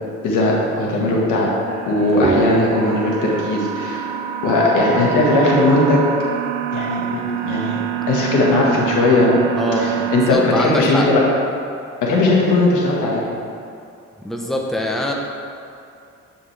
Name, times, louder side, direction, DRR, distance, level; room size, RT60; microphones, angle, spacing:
voice 1, 0.2-1.5 1.9-4.0 4.4-6.0 6.7-7.8 8.1-9.3 9.7-11.2 12.0-13.2, left 2 dB, 80° left, -3 dB, 1.6 m, -18 dB
sound 1, 1.7-10.3, right 10 dB, 85° right, 0.5 m, -27 dB
sound 2, 2.0-7.0, right 4 dB, 20° right, 0.3 m, -29 dB
voice 2, 9.6-11.1 14.2-15.1, left 1 dB, ahead, -1 dB, 0.8 m, -23 dB
9.0 x 5.5 x 3.3 m, 2.5 s
cardioid pair, 90°, 30 cm